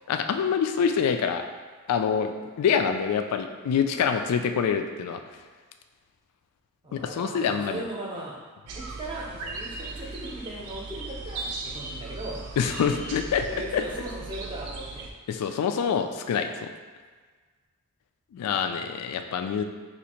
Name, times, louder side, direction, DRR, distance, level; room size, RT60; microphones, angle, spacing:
voice 1, 0.1-1.4 1.9-5.2 6.9-7.8 12.6-13.5 13.7-13.8 15.3-16.7 18.3-19.6, left 7 dB, 90° left, 10 dB, 0.3 m, -26 dB
voice 2, 6.8-8.4 8.7-12.9 13.5-15.1 18.4-18.8, right 1 dB, 20° right, -4 dB, 0.6 m, -38 dB
sound 1, 8.7-15.1, right 3 dB, 80° right, 0.5 m, -38 dB
2.8 x 2.5 x 4.2 m, 1.5 s
head